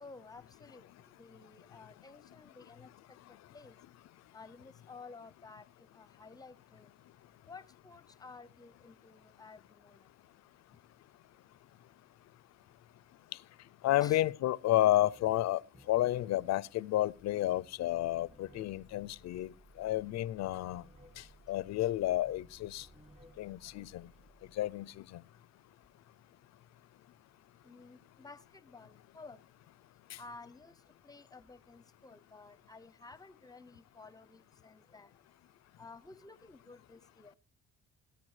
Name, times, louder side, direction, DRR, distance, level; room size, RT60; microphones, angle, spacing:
voice 1, 0.0-0.9 1.2-2.9 3.5-3.8 4.3-5.6 5.9-6.9 7.5-10.0 14.0-14.2 27.6-29.4 30.2-30.7 31.0-35.1 35.8-37.4, left 3 dB, 15° left, 0.6 m, -53 dB
voice 2, 13.8-15.6 15.9-20.8 21.2-22.9 23.4-24.1 24.6-25.2 30.1-30.2, left 14 dB, 60° left, 0.4 m, -31 dB
sound 1, 14.7-14.8 15.0-24.3, equal, 20° right, 1.6 m, -62 dB
sound 2, 17.0-25.2, right 3 dB, 75° right, 2.4 m, -63 dB
17.5 x 9.4 x 3.2 m
cardioid pair, 90°, 30 cm